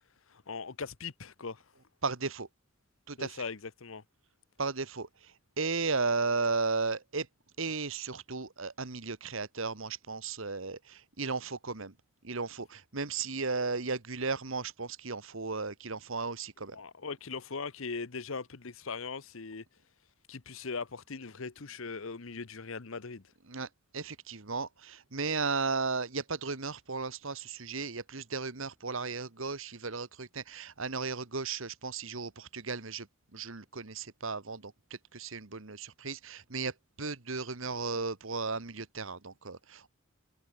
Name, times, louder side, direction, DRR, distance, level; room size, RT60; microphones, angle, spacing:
voice 1, 0.3-1.6 3.2-4.0 16.7-19.6 20.3-23.2, left 4 dB, 65° left, 1.0 m, -40 dB
voice 2, 2.0-2.5 3.1-3.4 4.6-7.3 7.6-11.9 12.2-16.8 23.5-23.7 23.9-33.1 33.3-36.7 37.0-39.9, right 4 dB, 65° right, 1.7 m, -35 dB
head